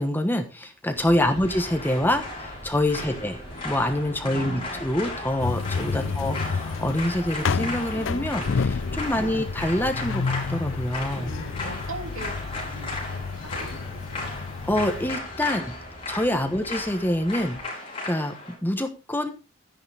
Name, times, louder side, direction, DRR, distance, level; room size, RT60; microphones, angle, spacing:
voice 1, 0.0-3.4 3.6-11.3 14.6-15.8 16.1-17.6 18.1-19.3, left 1 dB, 10° left, 6 dB, 1.2 m, -26 dB
sound 1, 0.9-17.6, equal, 15° right, 7.8 m, -43 dB
sound 2, 1.5-18.5, left 2 dB, 25° left, 4.8 m, -36 dB
voice 2, 4.2-4.7 5.9-6.2 9.2-9.5 11.2-14.3 16.5-16.6, right 3 dB, 80° right, 4 dB, 2.8 m, -41 dB
sound 3, 5.4-15.2, left 5 dB, 60° left, 0.4 m, -31 dB
12.0 x 10.5 x 3.5 m, 0.30 s
head